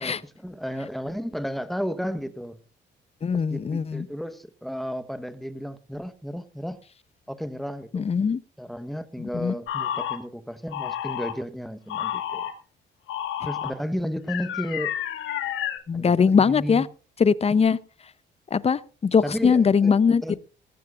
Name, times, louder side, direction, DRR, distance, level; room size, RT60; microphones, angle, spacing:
voice 1, 0.0-2.6 3.3-6.8 7.3-8.0 8.6-12.4 13.4-14.9 15.9-16.8 19.2-19.9 20.2-20.4, equal, ahead, 1.2 m, -33 dB
voice 2, 3.2-4.1 7.9-8.4 9.2-9.5 15.9-16.9 17.2-17.8 18.5-20.2, left 6 dB, 30° left, 0.7 m, -21 dB
sound 1, 9.7-10.2 10.7-11.3 11.9-12.5 13.1-13.7 14.3-15.8, left 11 dB, 85° left, 1.7 m, -30 dB
20.0 x 15.0 x 2.5 m
cardioid pair, 90°, 20 cm